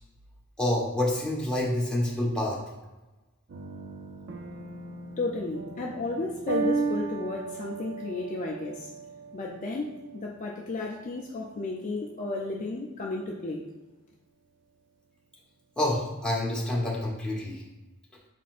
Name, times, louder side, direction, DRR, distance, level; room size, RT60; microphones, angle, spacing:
voice 1, 0.6-2.6 15.8-17.6, left 1 dB, 5° left, -6 dB, 1.1 m, -27 dB
sound 1, 3.5-12.5, right 4 dB, 60° right, 0.5 m, -36 dB
voice 2, 5.2-8.9 9.3-13.7, left 3 dB, 35° left, -1 dB, 0.4 m, -33 dB
5.2 x 4.1 x 2.5 m, 1.1 s
head